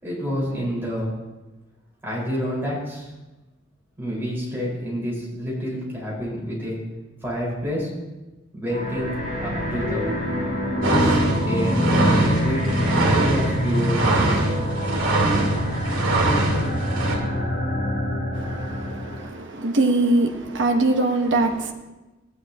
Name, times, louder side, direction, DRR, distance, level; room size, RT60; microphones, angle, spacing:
voice 1, 0.0-1.1 2.0-3.1 4.0-6.8 7.2-7.9 8.5-9.1 9.4-10.0 10.9-11.2 11.4-12.6 13.1-14.4, equal, 10° right, 4.5 m, -28 dB
sound 1, 8.7-19.3, equal, 50° left, 4.0 m, -26 dB
sound 2, 10.8-17.2, right 2 dB, 80° right, 2.4 m, -23 dB
voice 2, 18.3-21.7, right 2 dB, 65° right, 1.1 m, -22 dB
15.5 x 10.0 x 2.9 m
head